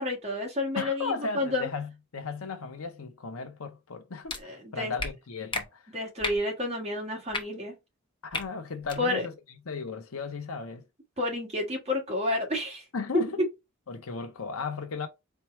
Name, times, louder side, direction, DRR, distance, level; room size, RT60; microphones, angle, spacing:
voice 1, 0.0-1.7 4.4-4.9 5.9-7.8 9.0-9.3 11.2-12.8, left 2 dB, 30° right, 1.6 m, -30 dB
voice 2, 0.7-5.9 8.2-10.8 12.9-13.4 13.9-15.1, left 4 dB, 80° left, 0.8 m, -36 dB
sound 1, 4.3-4.4 5.0-5.1 5.5-5.6 6.2-6.4 7.3-7.4 8.3-8.4 8.8-9.0, left 3 dB, 25° left, 0.8 m, -32 dB
4.5 x 2.2 x 4.3 m
head